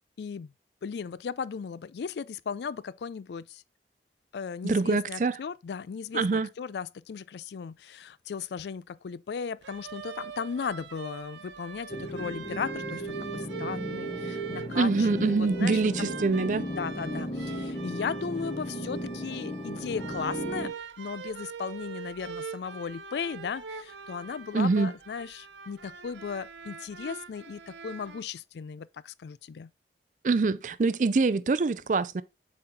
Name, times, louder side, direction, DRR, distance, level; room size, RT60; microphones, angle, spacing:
voice 1, 0.2-0.5 0.8-3.6 4.3-15.8 16.8-29.7, left 6 dB, 75° left, 0.4 m, -36 dB
voice 2, 4.6-5.3 6.1-6.5 14.7-16.7 24.5-24.9 30.2-32.2, right 3 dB, 45° right, 0.4 m, -25 dB
sound 1, 9.6-28.2, right 6 dB, 85° right, 0.7 m, -43 dB
sound 2, 11.9-20.7, equal, 30° left, 1.0 m, -35 dB
7.6 x 4.3 x 3.6 m
head